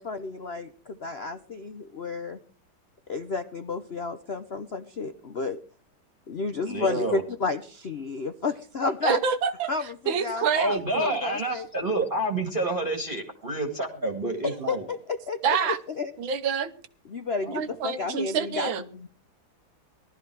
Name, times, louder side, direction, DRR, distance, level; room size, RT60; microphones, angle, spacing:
voice 1, 0.0-2.4 3.1-5.6 6.3-9.2 9.7-11.7 14.4-16.1 17.1-19.1, left 4 dB, 60° left, 10 dB, 0.6 m, -31 dB
voice 2, 6.7-7.2 10.6-14.9 17.4-17.6, right 2 dB, 25° right, 2 dB, 2.0 m, -29 dB
voice 3, 9.0-9.7 10.1-11.2 15.4-15.8 16.2-16.7 17.5-18.8, right 6 dB, 70° right, 12 dB, 1.8 m, -27 dB
19.0 x 13.0 x 4.7 m, 0.42 s
omnidirectional pair, 2.3 m